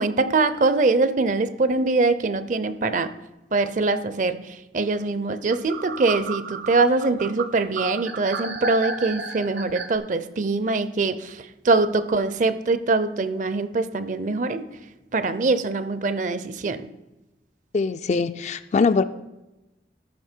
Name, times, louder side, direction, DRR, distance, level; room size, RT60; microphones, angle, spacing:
voice 1, 0.0-3.1 3.5-14.7 15.1-16.9, right 3 dB, 45° right, 13 dB, 0.5 m, -23 dB
sound 1, 5.5-10.0, right 4 dB, 65° right, 0.9 m, -32 dB
voice 2, 17.7-19.0, left 4 dB, 40° left, 12 dB, 0.3 m, -22 dB
14.0 x 6.2 x 4.4 m, 1.0 s
head